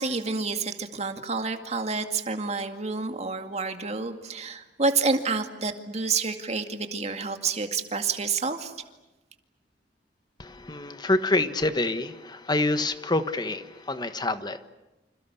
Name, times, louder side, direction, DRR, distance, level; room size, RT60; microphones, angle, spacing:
voice 1, 0.0-8.7, right 4 dB, 40° right, 6 dB, 2.2 m, -29 dB
voice 2, 10.4-14.7, left 2 dB, 25° left, 10 dB, 1.3 m, -27 dB
29.0 x 27.0 x 7.1 m, 1.0 s
head